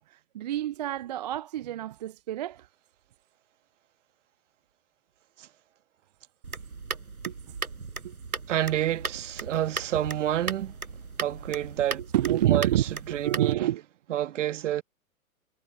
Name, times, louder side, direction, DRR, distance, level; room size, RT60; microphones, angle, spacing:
voice 1, 0.0-2.7 7.3-7.5 8.0-8.1 12.1-12.8 13.2-13.8, right 13 dB, 30° right, 0.4 m, -28 dB
sound 1, 6.4-13.5, right 4 dB, 85° right, 6.5 m, -37 dB
voice 2, 8.5-10.7 11.2-12.0 12.3-13.7 14.1-14.8, right 12 dB, 55° right, 1.6 m, -29 dB
hypercardioid pair, 120°, 43 cm